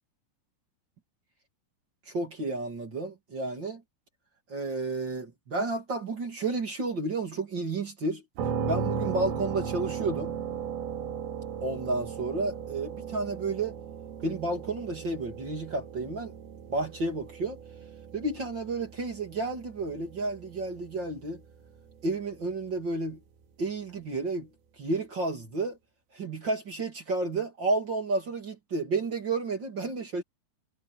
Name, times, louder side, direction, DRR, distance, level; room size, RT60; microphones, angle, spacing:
voice 1, 2.1-3.8 4.5-8.2 8.7-10.3 11.6-13.7 14.2-16.3 16.7-17.6 18.1-21.4 22.0-23.2 23.6-24.5 24.8-25.8 26.1-30.2, right 3 dB, 30° right, 2.3 m, -31 dB
sound 1, 8.4-22.1, right 6 dB, 90° right, 5.7 m, -37 dB
omnidirectional pair, 5.6 m